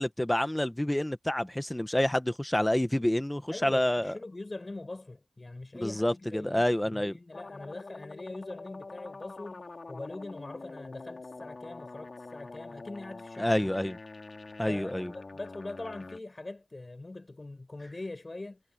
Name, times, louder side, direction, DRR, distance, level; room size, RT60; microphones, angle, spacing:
voice 1, 0.0-4.2 5.7-7.2 13.4-14.0 14.6-15.1, left 1 dB, 15° left, 1.2 m, -28 dB
voice 2, 3.5-13.7 14.7-18.6, left 2 dB, 50° left, 4.7 m, -42 dB
sound 1, 7.3-16.2, left 3 dB, 80° left, 3.3 m, -45 dB
wide cardioid pair, 65°, 0 cm